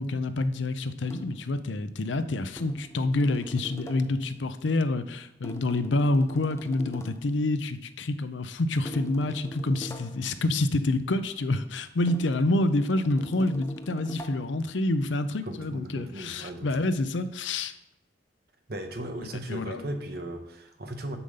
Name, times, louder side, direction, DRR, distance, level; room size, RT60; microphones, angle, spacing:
voice 1, 0.0-17.7 19.2-19.9, left 2 dB, 80° left, 12 dB, 0.6 m, -27 dB
sound 1, 1.1-1.5 2.6-4.2 5.4-7.3 8.8-10.3 12.1-14.6, equal, 15° left, 0.6 m, -43 dB
voice 2, 15.5-16.8 18.7-21.2, right 1 dB, 55° right, 5 dB, 1.0 m, -37 dB
7.0 x 5.6 x 6.6 m, 0.85 s
head